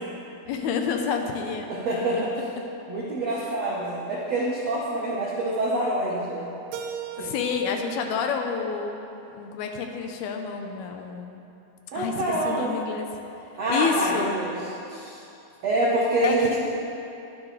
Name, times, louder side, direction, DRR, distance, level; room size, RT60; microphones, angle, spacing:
voice 1, 0.5-1.7 2.1-2.2 7.2-9.0 9.3-11.4 12.0-13.1 13.7-14.4 16.2-16.6, left 6 dB, 75° left, 4 dB, 2.5 m, -29 dB
voice 2, 1.7-2.3 2.9-6.5 7.2-7.3 11.9-12.8 13.6-14.6 14.9-15.2 15.6-16.5, right 1 dB, 70° right, -5 dB, 1.5 m, -26 dB
Keyboard (musical), 6.7-9.6, right 9 dB, 90° right, 2.8 m, -40 dB
22.0 x 9.8 x 3.3 m, 2.8 s
omnidirectional pair, 4.7 m